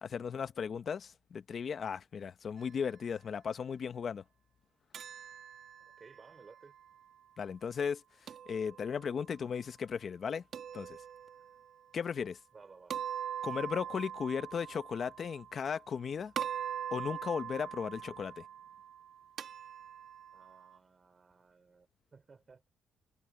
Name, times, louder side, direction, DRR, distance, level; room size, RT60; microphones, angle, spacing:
voice 1, 0.0-4.2 7.4-8.0 8.5-10.4 10.7-11.0 11.9-12.4 13.4-16.3 16.9-18.4, left 6 dB, 40° left, 0.8 m, -36 dB
sound 1, 4.9-7.0 8.3-9.3 10.5-11.7 12.9-16.0 16.4-20.8, right 9 dB, 50° right, 1.8 m, -43 dB
voice 2, 5.8-6.8 12.5-13.0 17.9-18.1 20.3-22.7, right 4 dB, 25° right, 4.5 m, -58 dB
cardioid pair, 155°, 0 cm